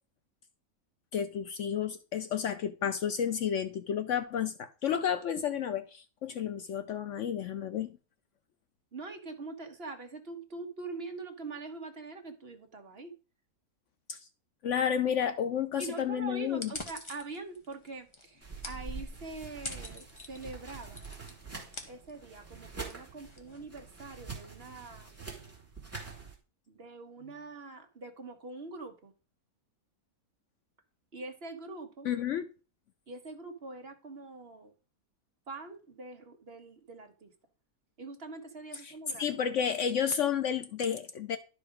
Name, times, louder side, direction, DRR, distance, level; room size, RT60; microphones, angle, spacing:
voice 1, 1.1-8.0 14.1-14.2 14.6-16.7 32.0-32.5 38.8-38.9 39.2-41.4, left 8 dB, 65° left, 0.9 m, -31 dB
voice 2, 8.9-13.1 15.8-21.0 21.9-25.2 26.7-29.1 31.1-32.1 33.1-34.7 35.5-37.3 38.0-39.2, right 3 dB, 45° right, 1.4 m, -44 dB
sound 1, 16.5-24.2, left 2 dB, 20° left, 1.2 m, -47 dB
sound 2, 18.4-26.4, right 4 dB, 10° right, 2.4 m, -45 dB
11.5 x 4.9 x 5.0 m
omnidirectional pair, 1.6 m